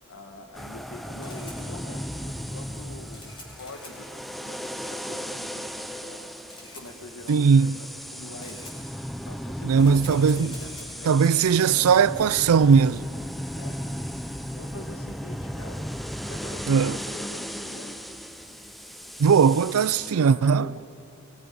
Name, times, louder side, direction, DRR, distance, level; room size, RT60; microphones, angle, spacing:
voice 1, 0.1-8.7 9.2-11.9 12.2-13.0 13.5-15.9 16.3-18.0 20.3-20.8, left 2 dB, 70° left, 1.4 m, -44 dB
sound 1, 0.5-20.1, equal, ahead, 0.5 m, -36 dB
Camera, 1.2-14.2, left 2 dB, 25° left, 4.9 m, -50 dB
voice 2, 7.3-7.8 9.6-10.5 11.0-13.0 16.7-17.0 19.2-20.7, right 6 dB, 80° right, 0.4 m, -19 dB
23.0 x 22.5 x 5.4 m
head